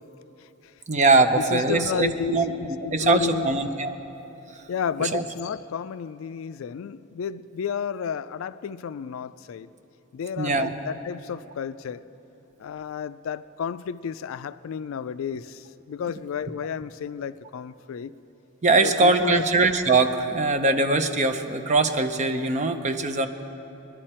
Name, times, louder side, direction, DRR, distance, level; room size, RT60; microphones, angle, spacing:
voice 1, 0.9-2.5 2.9-4.0 5.0-5.2 10.4-10.7 18.6-23.3, right 3 dB, 35° right, 8 dB, 0.6 m, -22 dB
voice 2, 1.4-3.5 4.7-9.7 10.1-12.0 12.6-18.1 18.8-19.5, left 7 dB, 70° left, 14 dB, 0.3 m, -32 dB
21.0 x 11.0 x 4.4 m, 3.0 s
head